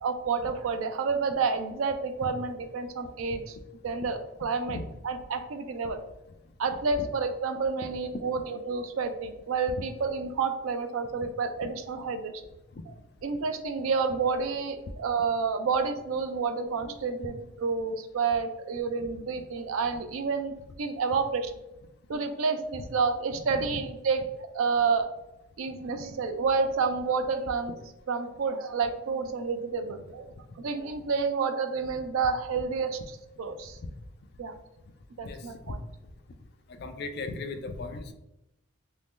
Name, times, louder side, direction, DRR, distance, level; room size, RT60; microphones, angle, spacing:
voice 1, 0.0-3.6 3.8-4.8 5.0-6.0 6.6-12.3 13.2-21.5 22.1-25.1 25.6-27.7 28.1-30.2 30.6-33.8 34.4-34.5 35.2-35.8, right 5 dB, 80° right, 7 dB, 0.4 m, -29 dB
voice 2, 36.7-38.1, left 3 dB, 50° left, 7 dB, 0.4 m, -37 dB
2.9 x 2.7 x 3.6 m, 0.91 s
head